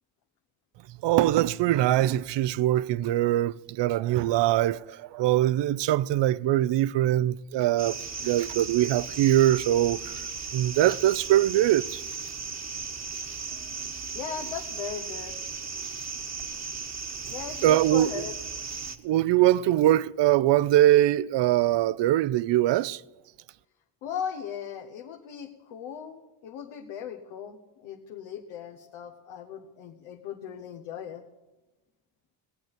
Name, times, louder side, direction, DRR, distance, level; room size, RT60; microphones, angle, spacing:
voice 1, 1.0-10.2 10.5-12.0 17.6-18.2 19.0-23.0, right 13 dB, 60° right, 0.6 m, -23 dB
sound 1, 7.8-19.0, right 5 dB, 35° right, 1.2 m, -36 dB
voice 2, 14.1-15.3 17.3-18.3 24.0-31.2, left 8 dB, 85° left, 1.1 m, -38 dB
17.0 x 8.9 x 8.0 m
supercardioid pair, 70°, 48 cm